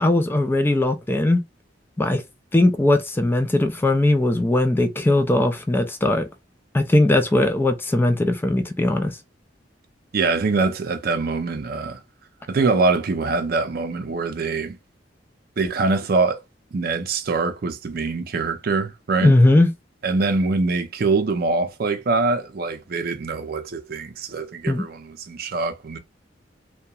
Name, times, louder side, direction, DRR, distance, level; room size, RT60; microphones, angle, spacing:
voice 1, 0.0-1.4 2.0-2.2 2.5-6.3 6.7-9.2 19.2-19.7 24.7-24.9, left 1 dB, 10° left, 0.3 m, -19 dB
voice 2, 10.1-12.0 12.5-14.8 15.6-16.4 16.7-19.4 20.0-26.0, right 3 dB, 55° right, 0.5 m, -23 dB
2.9 x 2.2 x 2.3 m
head